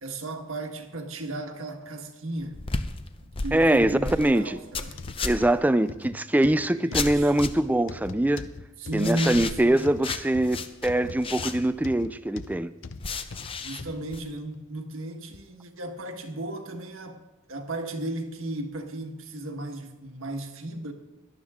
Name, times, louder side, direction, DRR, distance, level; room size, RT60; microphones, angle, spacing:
voice 1, 0.0-2.6 3.2-5.0 6.7-7.3 8.8-10.0 13.6-17.2 17.5-20.9, right 1 dB, 80° right, 1.5 m, -34 dB
sound 1, 2.4-5.6 6.9-7.8 9.0-11.9 13.0-14.2, left 4 dB, 25° left, 0.6 m, -34 dB
voice 2, 3.5-4.6 5.2-8.4 8.9-12.7, right 1 dB, 10° right, 0.3 m, -23 dB
sound 2, 4.9-14.0 14.5-14.7 15.3-15.4, left 3 dB, 65° left, 0.7 m, -41 dB
17.5 x 12.0 x 3.6 m
head